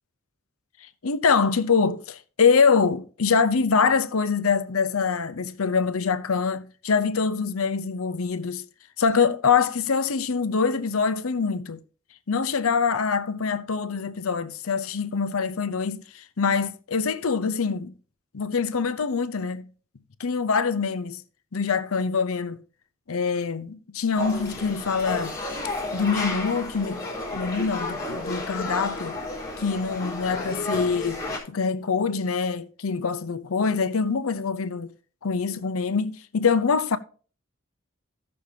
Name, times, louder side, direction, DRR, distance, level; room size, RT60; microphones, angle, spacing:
voice 1, 1.0-8.6 9.0-11.8 12.3-17.9 18.3-19.7 20.2-21.2 21.5-22.6 23.1-25.3 25.9-27.0 27.3-29.2 29.6-34.9 35.2-37.0, left 5 dB, 85° left, 0.7 m, -24 dB
sound 1, 24.2-31.4, left 2 dB, 20° left, 3.9 m, -32 dB
16.0 x 6.5 x 2.8 m
head